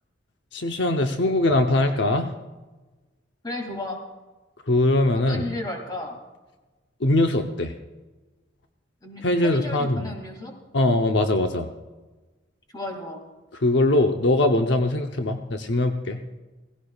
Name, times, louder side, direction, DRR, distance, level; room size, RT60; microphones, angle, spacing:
voice 1, 0.5-2.4 4.6-5.5 7.0-7.8 9.2-10.1 10.7-11.7 13.5-16.2, left 2 dB, 70° left, 5 dB, 0.8 m, -22 dB
voice 2, 3.4-4.0 5.1-6.2 9.0-10.5 12.7-13.2, left 2 dB, 20° left, 2 dB, 2.4 m, -34 dB
17.5 x 16.5 x 2.4 m, 1.2 s
head